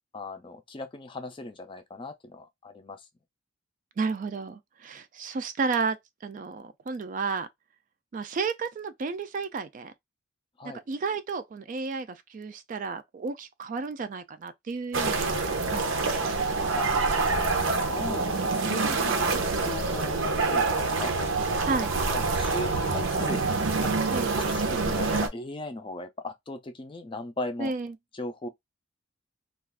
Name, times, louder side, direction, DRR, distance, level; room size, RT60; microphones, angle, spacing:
voice 1, 0.1-3.1 10.6-10.8 16.8-16.9 17.5-20.2 20.5-21.1 21.5-21.7 22.1-23.4 23.8-23.9 24.4-27.7 28.1-28.5, left 2 dB, 25° left, 0.4 m, -38 dB
voice 2, 4.0-7.5 8.1-9.9 10.6-15.2 15.5-16.1 21.6-21.9 24.1-24.4 27.6-27.9, right 4 dB, 40° right, 0.3 m, -32 dB
sound 1, 14.9-25.3, right 3 dB, 80° right, 0.7 m, -26 dB
2.4 x 2.4 x 3.3 m
head